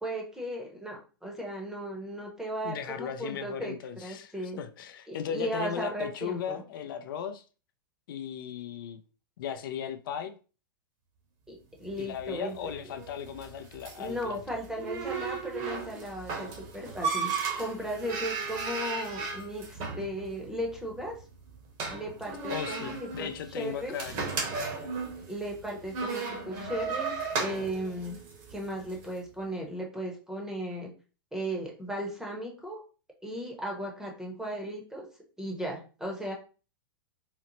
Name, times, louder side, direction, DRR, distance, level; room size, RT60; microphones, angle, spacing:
voice 1, 0.0-4.6 5.1-6.6 11.5-12.5 14.0-21.2 21.9-23.9 25.3-28.2 28.5-30.9 31.3-32.8 33.2-35.1 35.4-36.3, equal, 5° right, 0.7 m, -36 dB
voice 2, 2.6-7.4 8.1-9.0 9.4-10.4 12.0-14.4 22.5-24.2, left 8 dB, 70° left, 0.4 m, -37 dB
sound 1, 11.8-29.1, right 4 dB, 40° right, 0.9 m, -36 dB
4.0 x 2.0 x 2.9 m
hypercardioid pair, 140°, 12 cm